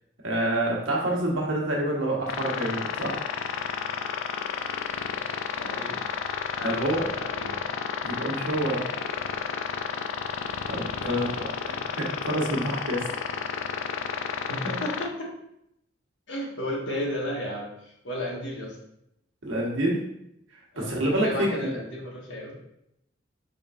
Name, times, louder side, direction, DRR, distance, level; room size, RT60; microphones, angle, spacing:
voice 1, 0.2-3.2 6.6-7.1 8.0-8.8 10.7-13.1 19.4-20.0 20.8-21.7, right 1 dB, 80° right, -2 dB, 1.0 m, -27 dB
sound 1, 2.3-15.1, left 6 dB, 85° left, 0.4 m, -32 dB
voice 2, 5.6-6.0 6.4-7.6 11.0-11.2 14.5-15.3 16.3-18.8 20.7-22.5, left 1 dB, 65° left, -3 dB, 1.1 m, -33 dB
4.1 x 3.6 x 2.4 m, 0.78 s
head